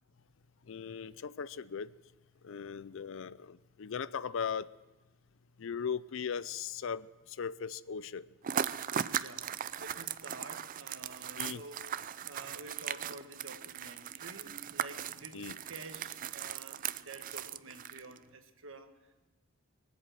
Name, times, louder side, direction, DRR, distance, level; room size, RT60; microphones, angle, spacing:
voice 1, 0.7-1.9 2.4-4.7 5.6-7.1 7.4-8.2 11.3-11.6 15.3-15.5, left 6 dB, 65° left, 0.5 m, -38 dB
sound 1, 8.4-18.2, right 9 dB, 40° right, 0.4 m, -38 dB
voice 2, 9.0-12.0 12.2-19.3, right 2 dB, 65° right, 1.4 m, -50 dB
23.0 x 8.0 x 7.6 m
head